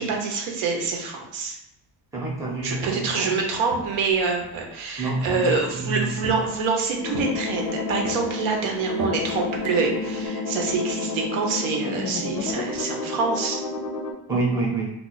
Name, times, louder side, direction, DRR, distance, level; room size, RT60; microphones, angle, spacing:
voice 1, 0.0-1.6 2.6-13.6, right 4 dB, 80° right, 1 dB, 0.8 m, -26 dB
voice 2, 2.1-3.3 5.0-6.3 14.3-14.9, right 2 dB, 5° right, -5 dB, 0.6 m, -27 dB
Walk footsteps, 2.6-3.2 3.7-4.7 5.3-5.8 6.2-6.8 7.1-7.7 8.0-10.3, right 3 dB, 55° right, 0.6 m, -37 dB
sound 1, 7.0-14.1, left 3 dB, 45° left, 0.4 m, -30 dB
2.4 x 2.3 x 3.8 m, 0.83 s
cardioid pair, 165°, 47 cm